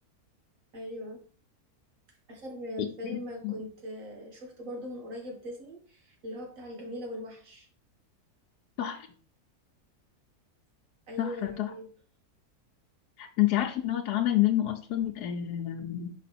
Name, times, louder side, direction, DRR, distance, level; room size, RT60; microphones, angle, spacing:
voice 1, 0.7-1.2 2.3-7.7 11.1-11.9, left 1 dB, 55° right, 1 dB, 2.1 m, -40 dB
voice 2, 11.2-11.7 13.2-16.1, left 13 dB, 85° left, 2 dB, 1.3 m, -28 dB
5.4 x 5.0 x 4.2 m, 0.41 s
omnidirectional pair, 1.7 m